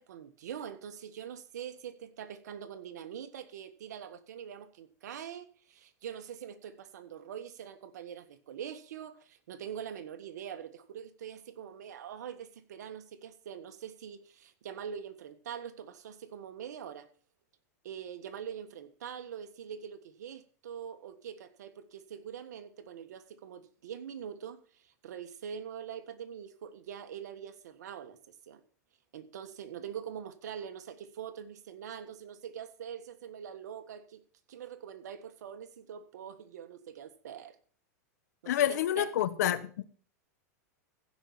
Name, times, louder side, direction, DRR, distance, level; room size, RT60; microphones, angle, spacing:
voice 1, 0.0-17.1 17.8-28.6 29.1-34.2 34.5-37.6 38.4-39.1 39.4-39.8, right 8 dB, 80° right, 1.5 m, -44 dB
voice 2, 38.5-39.6, left 12 dB, 75° left, 1.2 m, -27 dB
15.5 x 5.6 x 7.3 m
hypercardioid pair, 115°, 9 cm